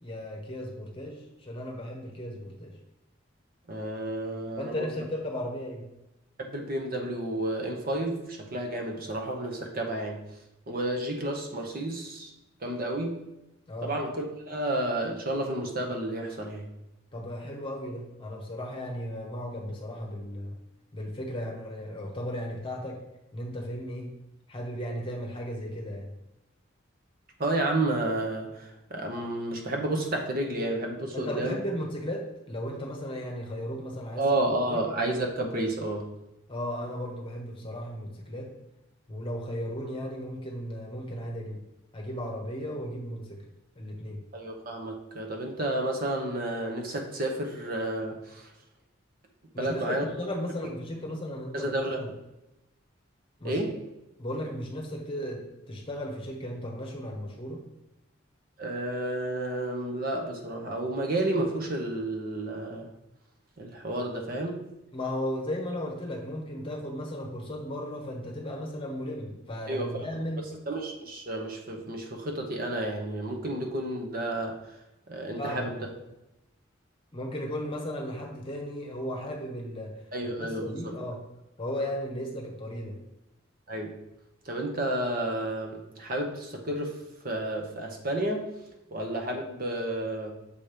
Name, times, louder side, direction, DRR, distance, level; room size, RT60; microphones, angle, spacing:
voice 1, 0.0-2.7 4.6-5.8 13.7-13.9 17.1-20.5 20.9-23.0 23.3-24.1 24.5-26.1 31.1-34.2 34.7-34.8 36.5-38.5 39.1-41.6 41.9-43.4 43.8-44.2 49.5-52.1 53.4-53.7 54.2-57.6 64.9-70.5 75.4-75.9 77.1-79.9 80.4-81.2 81.6-83.0, equal, 25° left, 0 dB, 1.0 m, -35 dB
voice 2, 3.7-4.9 6.4-10.2 10.7-12.3 12.6-13.2 13.8-16.7 27.4-31.6 34.2-36.1 44.3-48.5 49.6-50.0 51.5-52.0 53.4-53.7 58.6-62.9 63.6-64.6 69.7-70.1 70.7-74.6 75.1-75.7 80.1-81.0 83.7-83.9 84.5-87.0 87.2-88.5 88.9-90.4, right 1 dB, 45° right, 1 dB, 0.9 m, -31 dB
6.9 x 3.0 x 5.1 m, 0.92 s
head